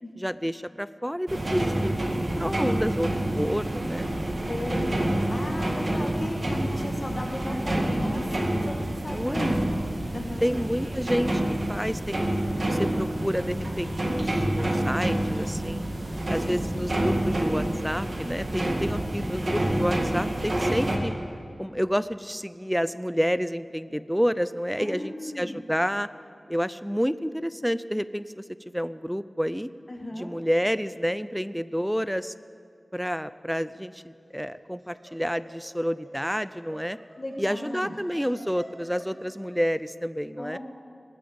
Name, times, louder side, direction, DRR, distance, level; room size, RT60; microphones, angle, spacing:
voice 1, 0.2-4.1 9.1-9.6 10.4-11.4 11.7-12.3 12.7-15.8 16.3-21.1 21.6-26.1 26.5-29.7 30.2-32.3 32.9-37.0 37.4-40.6, equal, ahead, 15 dB, 0.4 m, -29 dB
sound 1, 1.3-21.0, right 1 dB, 50° right, 2.0 m, -28 dB
voice 2, 3.3-3.8 4.3-9.5 10.1-10.5 24.8-25.6 29.9-30.3 37.2-38.0 40.4-40.6, left 1 dB, 40° left, 2 dB, 1.7 m, -35 dB
Laughter, 34.2-39.6, right 1 dB, 35° right, 5.3 m, -50 dB
20.0 x 8.7 x 7.9 m, 2.3 s
wide cardioid pair, 65°, 0 cm